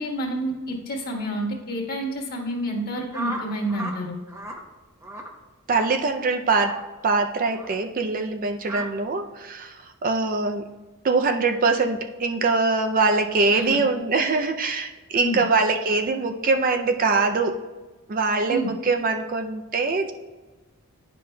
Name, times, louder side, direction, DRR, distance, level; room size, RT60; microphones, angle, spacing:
voice 1, 0.0-4.2 13.5-13.8 15.2-15.4 18.5-18.7, right 1 dB, 45° left, -2 dB, 1.5 m, -29 dB
sound 1, 3.1-4.0 4.3-4.6 5.0-5.3 5.7-5.9 6.5-6.8 7.5-7.7 8.6-8.9, right 1 dB, 15° right, 0.8 m, -34 dB
voice 2, 5.7-10.7 11.0-17.6 18.1-20.1, right 3 dB, 40° right, 6 dB, 0.4 m, -23 dB
10.5 x 5.2 x 2.2 m, 1.2 s
head